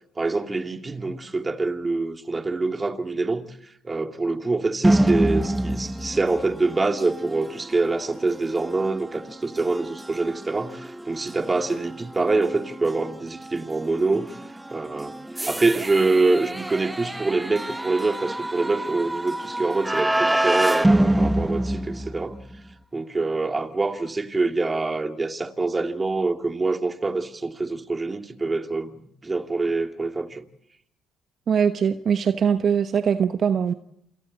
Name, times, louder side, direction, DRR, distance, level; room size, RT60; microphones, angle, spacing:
voice 1, 0.2-3.5 3.8-14.4 14.7-15.2 15.5-22.4 22.9-30.4, right 3 dB, 25° right, 2.6 m, -25 dB
sound 1, 4.8-22.6, right 1 dB, 10° right, 1.3 m, -27 dB
voice 2, 31.5-33.7, right 7 dB, 50° right, 1.1 m, -21 dB
28.0 x 28.0 x 4.2 m
hypercardioid pair, 60°, 0 cm